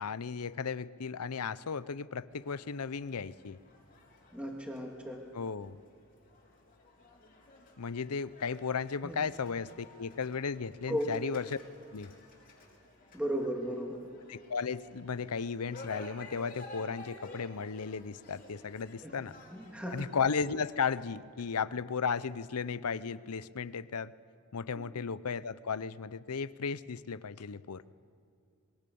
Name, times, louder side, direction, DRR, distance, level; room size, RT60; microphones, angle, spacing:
voice 1, 0.0-3.6 5.3-5.8 7.8-11.6 11.9-12.1 14.3-19.3 19.9-24.1 24.5-27.8, left 5 dB, 90° left, 17 dB, 0.7 m, -35 dB
sound 1, 2.3-21.0, left 2 dB, 40° left, 4.1 m, -54 dB
voice 2, 4.3-5.2 9.0-9.2 10.9-11.1 13.1-14.0 19.0-19.2 19.5-20.0 24.7-24.8, equal, 5° right, 1 dB, 2.4 m, -35 dB
25.5 x 22.5 x 7.0 m, 2.4 s
head